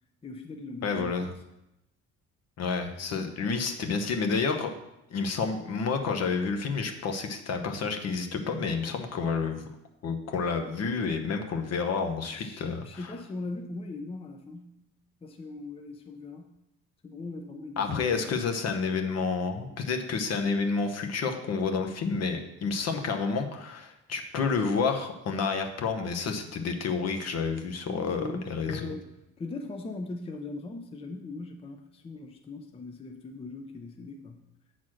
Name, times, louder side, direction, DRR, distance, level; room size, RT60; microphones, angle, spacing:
voice 1, 0.2-1.3 12.3-14.8 15.2-16.5 17.0-18.5 27.9-29.1 29.4-34.4, left 3 dB, 20° left, 4 dB, 0.5 m, -40 dB
voice 2, 0.8-1.3 2.6-4.7 5.1-9.6 10.0-13.1 17.8-28.9, left 5 dB, 55° left, 6 dB, 1.0 m, -29 dB
7.5 x 4.1 x 6.3 m, 0.87 s
cardioid pair, 135°, 31 cm